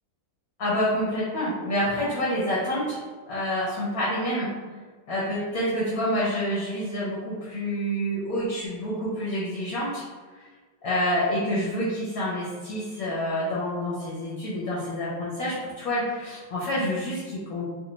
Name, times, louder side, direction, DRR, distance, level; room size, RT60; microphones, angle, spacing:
voice 1, 0.6-3.0 3.3-4.5 5.1-10.0 10.8-17.6, equal, 60° left, -7 dB, 0.9 m, -28 dB
3.6 x 2.2 x 3.0 m, 1.5 s
omnidirectional pair, 2.3 m